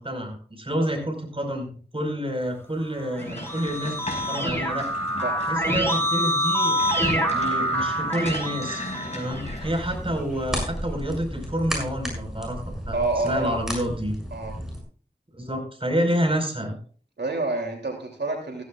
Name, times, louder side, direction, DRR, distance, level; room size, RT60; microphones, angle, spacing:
voice 1, 0.0-4.9 5.5-6.8 7.3-8.9 9.1-14.1 15.3-16.8, equal, 30° right, 3 dB, 5.0 m, -28 dB
Keyboard (musical), 3.1-9.7, equal, 15° left, 5.5 m, -26 dB
sound 1, 3.2-9.8, left 1 dB, 40° left, 5.4 m, -37 dB
sound 2, 9.3-14.8, equal, 5° right, 6.8 m, -33 dB
voice 2, 12.9-13.6 14.3-14.5 17.2-18.6, right 2 dB, 85° right, 1 dB, 3.0 m, -27 dB
15.5 x 15.0 x 2.5 m, 0.43 s
wide cardioid pair, 40°, 17 cm